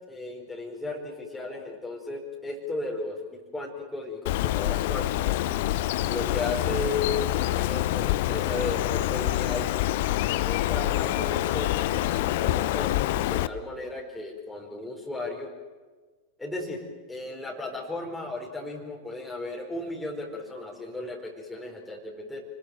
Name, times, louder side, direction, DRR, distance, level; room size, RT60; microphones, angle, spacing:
voice 1, 0.1-5.4 5.7-9.7 10.4-15.5 16.4-22.4, left 2 dB, 5° left, -2 dB, 4.6 m, -35 dB
Bird, 4.3-13.5, left 15 dB, 50° left, 0.8 m, -26 dB
29.0 x 21.0 x 7.8 m, 1.4 s
figure-of-eight pair, 90°, 0 cm